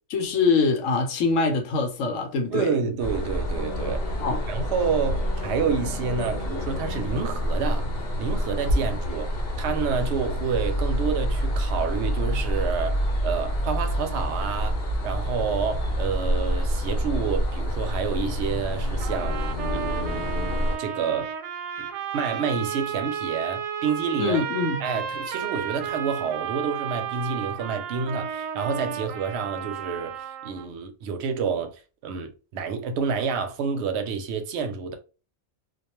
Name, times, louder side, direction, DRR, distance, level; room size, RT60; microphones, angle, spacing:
voice 1, 0.1-2.7 4.2-4.4 24.2-24.8, left 4 dB, 80° left, 1.0 m, -24 dB
voice 2, 2.5-4.0 4.5-7.9 8.2-14.8 15.0-19.5 19.7-20.3 20.8-21.3 21.8-21.9 22.1-24.4 24.8-35.0, right 6 dB, 65° right, 0.8 m, -29 dB
sound 1, 3.0-20.8, equal, 55° left, 0.8 m, -27 dB
sound 2, 19.0-30.7, right 8 dB, 90° right, 1.0 m, -33 dB
2.3 x 2.2 x 2.9 m
omnidirectional pair, 1.3 m